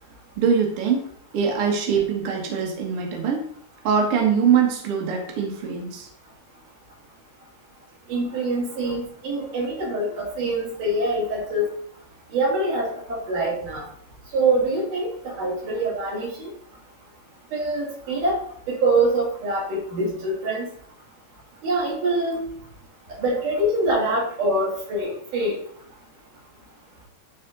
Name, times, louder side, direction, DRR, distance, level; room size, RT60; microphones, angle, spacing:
voice 1, 0.4-1.0 1.3-3.4 3.8-6.1, right 6 dB, 75° right, 0 dB, 1.3 m, -22 dB
voice 2, 8.1-11.7 12.3-13.9 14.3-16.5 17.5-18.4 18.7-20.7 21.6-22.4 23.2-25.6, right 2 dB, 50° right, -4 dB, 3.8 m, -24 dB
11.5 x 4.3 x 3.9 m, 0.62 s
omnidirectional pair, 5.2 m